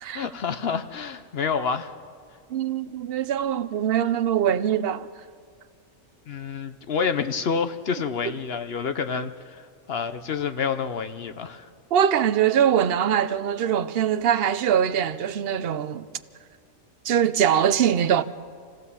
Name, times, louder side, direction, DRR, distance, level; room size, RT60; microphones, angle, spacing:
voice 1, 0.1-1.9 6.3-11.7, left 6 dB, 55° left, 0.9 m, -28 dB
voice 2, 2.5-5.1 11.9-16.1 17.0-18.2, right 9 dB, 55° right, 0.8 m, -22 dB
27.5 x 16.0 x 7.0 m
omnidirectional pair, 1.4 m